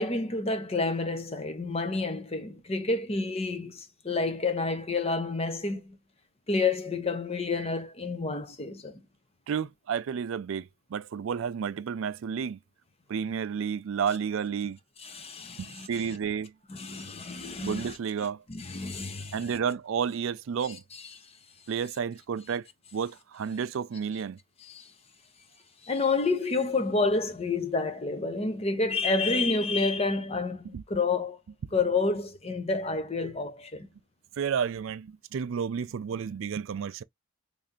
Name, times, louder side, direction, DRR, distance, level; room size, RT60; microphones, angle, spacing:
voice 1, 0.0-6.0 6.5-9.0 15.0-15.9 16.7-18.0 18.5-19.4 20.9-21.1 24.6-24.9 25.8-31.4 31.7-33.9, left 3 dB, 30° left, 0.7 m, -29 dB
voice 2, 9.5-12.6 13.1-14.8 15.6-16.5 17.6-18.4 19.3-20.8 21.7-24.4 30.7-30.8 34.4-37.0, right 7 dB, 70° right, 0.4 m, -31 dB
3.2 x 2.7 x 3.6 m
head